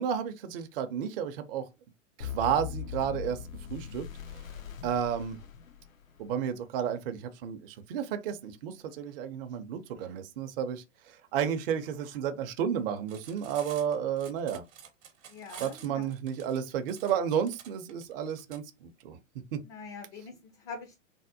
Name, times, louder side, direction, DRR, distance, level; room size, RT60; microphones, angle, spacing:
voice 1, 0.0-1.6 2.2-3.4 3.7-4.0 4.3-4.4 4.8-5.4 6.2-14.6 15.6-19.2 19.5-19.6, right 8 dB, 45° right, 0.5 m, -32 dB
sound 1, 2.2-6.3, left 8 dB, 90° left, 0.6 m, -40 dB
Cutlery silverware, 13.0-18.6, right 8 dB, 65° right, 0.9 m, -50 dB
voice 2, 15.3-16.1 19.6-21.0, left 4 dB, 30° left, 0.4 m, -44 dB
3.3 x 2.1 x 2.6 m
hypercardioid pair, 105°, 39 cm